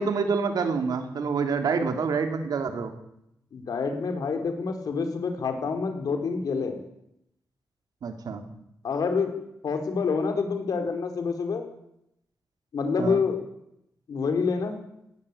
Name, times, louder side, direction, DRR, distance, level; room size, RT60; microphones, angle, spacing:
voice 1, 0.0-3.0 8.0-8.4 13.0-13.2, right 5 dB, 80° right, 6 dB, 3.3 m, -27 dB
voice 2, 3.5-6.8 8.8-9.3 9.6-11.7 12.7-13.4 14.1-14.8, left 5 dB, 70° left, 6 dB, 4.3 m, -27 dB
19.5 x 18.5 x 8.7 m, 0.79 s
wide cardioid pair, 140°, 7 cm